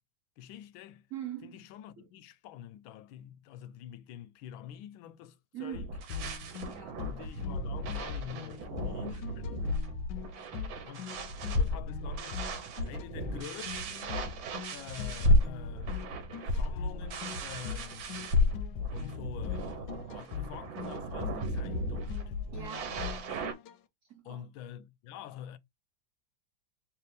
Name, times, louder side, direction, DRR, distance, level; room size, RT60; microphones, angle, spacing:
voice 1, 0.4-1.1 1.4-5.9 7.0-9.8 10.8-11.1 11.6-12.4 12.9-14.2 14.7-16.2 16.5-18.1 18.9-22.1 24.2-25.6, left 10 dB, 90° left, 1.4 m, -47 dB
voice 2, 1.1-1.6 2.0-2.1 5.5-5.9 6.7-7.0 22.5-23.2 24.1-24.4, right 10 dB, 65° right, 0.8 m, -42 dB
sound 1, 5.7-23.5, left 1 dB, 90° right, 1.7 m, -33 dB
sound 2, 6.1-23.8, left 8 dB, 75° left, 1.1 m, -41 dB
3.4 x 3.2 x 3.2 m
omnidirectional pair, 2.1 m